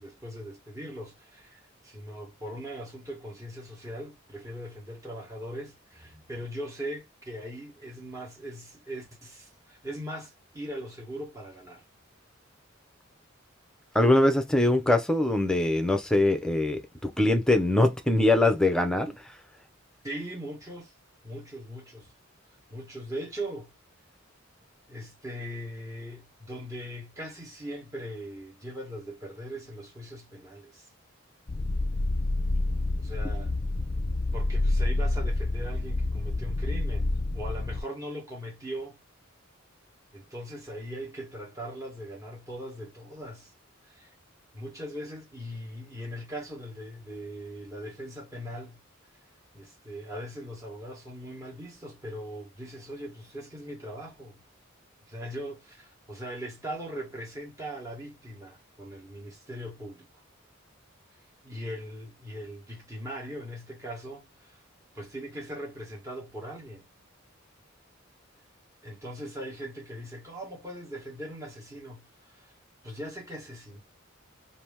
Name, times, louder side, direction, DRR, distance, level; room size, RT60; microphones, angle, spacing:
voice 1, 0.0-11.8 20.0-20.9 21.2-22.1 22.7-23.7 24.9-30.9 33.0-33.5 34.3-39.0 40.1-43.5 43.8-44.1 44.5-48.8 49.5-54.4 55.1-60.1 61.4-64.6 64.9-66.9 68.8-72.5 72.8-73.8, equal, 15° right, 1.3 m, -40 dB
voice 2, 13.9-19.1, left 2 dB, 5° left, 0.6 m, -23 dB
sound 1, 31.5-37.8, left 2 dB, 40° left, 0.6 m, -28 dB
2.9 x 2.7 x 3.4 m
head